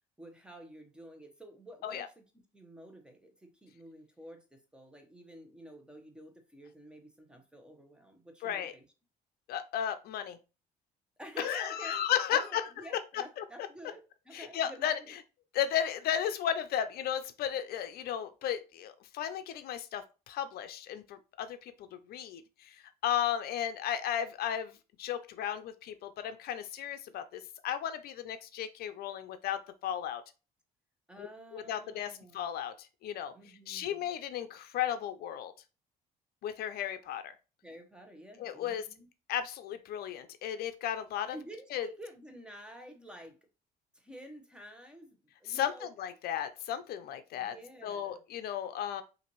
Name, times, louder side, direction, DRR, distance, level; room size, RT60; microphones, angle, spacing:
voice 1, 0.2-2.2 2.5-8.8 11.2-12.0 12.3-15.1 31.1-32.5 33.3-34.1 37.6-39.1 41.3-43.4 43.9-45.9 47.4-48.2, equal, 5° right, 5 dB, 1.0 m, -50 dB
voice 2, 8.4-8.7 9.5-10.4 11.4-12.6 13.4-13.5 14.3-14.9 15.5-30.2 31.2-31.3 31.5-33.3 33.7-35.5 36.4-37.3 38.4-38.9 39.3-41.4 41.7-41.9 45.5-47.5 47.8-49.0, left 10 dB, 65° left, 10 dB, 0.5 m, -34 dB
5.6 x 2.6 x 3.0 m, 0.31 s
cardioid pair, 110°, 17 cm